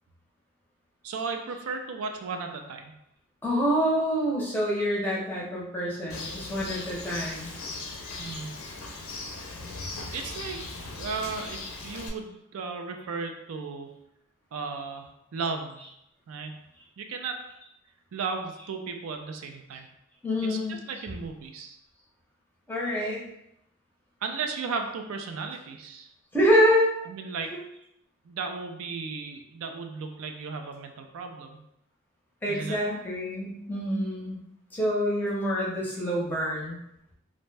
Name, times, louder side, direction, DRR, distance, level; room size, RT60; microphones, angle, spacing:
voice 1, 1.0-2.9 8.2-8.6 10.1-10.6 11.0-13.9 14.5-15.8 16.3-16.6 17.0-17.4 18.1-19.9 20.5-21.8 24.2-26.1 27.0-27.5 28.2-31.6 32.5-32.8, right 4 dB, 80° right, 4 dB, 0.4 m, -35 dB
voice 2, 3.4-7.5 20.2-20.8 22.7-23.2 26.3-26.9 32.4-34.4 34.7-36.8, equal, 10° left, -5 dB, 0.6 m, -26 dB
Bird, 6.1-12.1, left 3 dB, 75° left, 0.5 m, -38 dB
2.6 x 2.1 x 3.2 m, 0.80 s
head